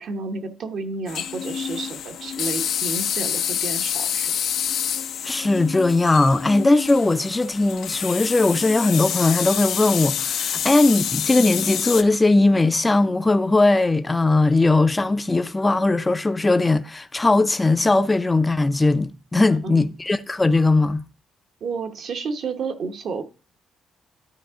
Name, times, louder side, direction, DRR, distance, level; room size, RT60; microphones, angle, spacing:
voice 1, 0.0-4.3 19.4-19.9 21.6-23.2, right 4 dB, 65° right, 1.2 m, -31 dB
sound 1, 1.1-12.0, left 9 dB, 75° left, 0.7 m, -27 dB
voice 2, 5.2-21.0, left 2 dB, 20° left, 0.5 m, -19 dB
12.5 x 4.8 x 3.7 m
cardioid pair, 90°, 0 cm